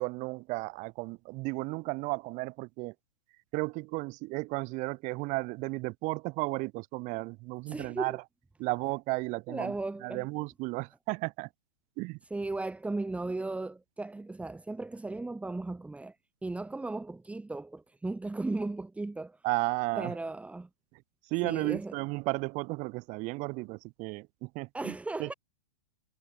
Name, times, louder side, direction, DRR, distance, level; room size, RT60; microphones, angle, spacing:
voice 1, 0.0-2.9 3.5-8.2 8.6-9.7 10.0-11.5 12.0-12.2 19.4-20.1 21.3-24.9 25.2-25.3, right 25 dB, 40° right, 4.9 m, -34 dB
voice 2, 7.7-8.2 9.5-10.3 12.3-16.1 16.4-19.4 20.0-20.7 21.4-22.0 24.7-25.3, right 2 dB, 5° right, 4.9 m, -36 dB
hypercardioid pair, 110°, 19 cm